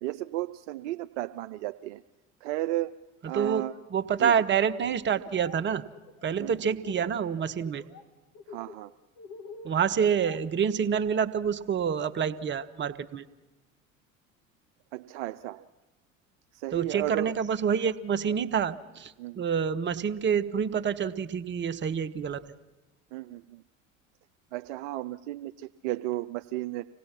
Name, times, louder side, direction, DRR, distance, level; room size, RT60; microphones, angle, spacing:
voice 1, 0.0-2.0 2.4-2.9 3.3-3.7 4.2-4.3 6.4-6.5 8.5-8.9 14.9-15.7 16.5-17.3 19.2-19.4 23.1-23.6 24.5-26.9, right 16 dB, 60° right, 10 dB, 0.6 m, -34 dB
voice 2, 3.3-3.6 3.9-5.8 6.2-7.8 9.6-13.2 16.7-22.4, right 7 dB, 30° right, 11 dB, 1.0 m, -27 dB
Laughter, 5.2-5.6 5.9-7.3 7.6-8.0 8.3-11.2, left 4 dB, 55° left, 2.2 m, -47 dB
25.5 x 18.0 x 5.9 m, 1.1 s
figure-of-eight pair, 65°, 40 cm